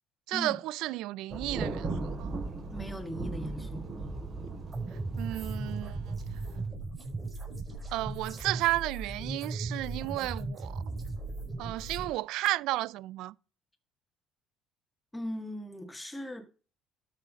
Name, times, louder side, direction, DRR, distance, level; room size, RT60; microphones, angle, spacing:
voice 1, 0.3-2.3 5.2-6.2 7.9-10.8 11.6-13.3, right 17 dB, 75° right, 0.4 m, -33 dB
Thunder, 1.3-6.7, right 3 dB, 40° right, 4.2 m, -38 dB
voice 2, 2.7-3.9 15.1-16.5, equal, 10° left, 1.7 m, -39 dB
sound 1, 4.7-12.1, right 3 dB, 20° right, 5.7 m, -37 dB
12.5 x 5.8 x 5.2 m
supercardioid pair, 95°, 0 cm